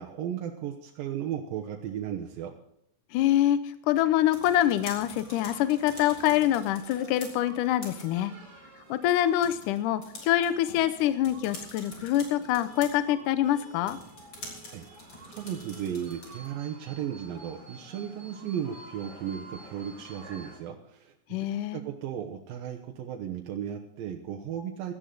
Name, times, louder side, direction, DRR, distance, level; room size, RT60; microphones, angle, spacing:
voice 1, 0.0-2.5 14.7-24.9, right 9 dB, 90° right, 2 dB, 2.8 m, -35 dB
voice 2, 3.1-3.6 3.9-8.3 8.9-14.0 21.3-21.8, left 12 dB, 75° left, 12 dB, 2.1 m, -25 dB
sound 1, 4.1-16.6, left 2 dB, 35° left, 4.1 m, -47 dB
sound 2, 4.7-20.6, right 2 dB, 30° right, 4.2 m, -51 dB
16.5 x 13.0 x 3.9 m, 0.76 s
omnidirectional pair, 3.9 m